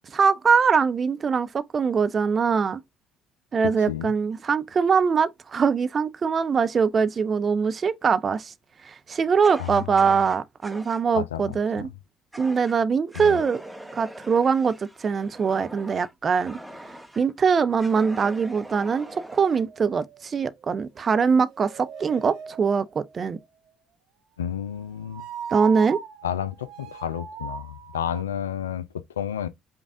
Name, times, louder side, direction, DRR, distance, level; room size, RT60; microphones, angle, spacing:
voice 1, 0.1-2.8 3.5-8.5 8.8-11.9 12.4-13.6 13.9-16.6 17.2-23.4 25.5-26.0, right 6 dB, 40° right, 0.5 m, -22 dB
voice 2, 3.6-4.1 9.6-10.2 11.1-11.9 13.2-13.4 24.4-25.3 26.2-29.5, left 9 dB, 85° left, 0.3 m, -31 dB
Fire, 9.4-11.0 12.3-12.8 13.1-17.3 17.8-19.6, right 1 dB, 5° right, 0.8 m, -42 dB
sound 1, 18.6-20.6 21.1-23.1 25.0-28.2, right 6 dB, 60° right, 1.1 m, -39 dB
5.2 x 2.4 x 3.5 m
hypercardioid pair, 55°, 0 cm